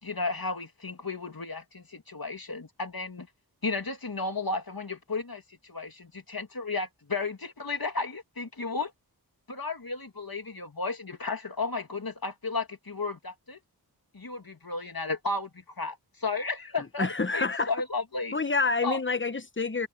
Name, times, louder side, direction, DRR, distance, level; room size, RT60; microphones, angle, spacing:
voice 1, 0.0-3.3 3.6-8.9 9.5-13.6 14.1-15.5 15.8-18.4 18.8-19.0, left 3 dB, 60° left, 2.7 m, -33 dB
voice 2, 17.0-17.7 18.3-19.9, left 4 dB, 30° left, 1.1 m, -27 dB
wide cardioid pair, 50°, 40 cm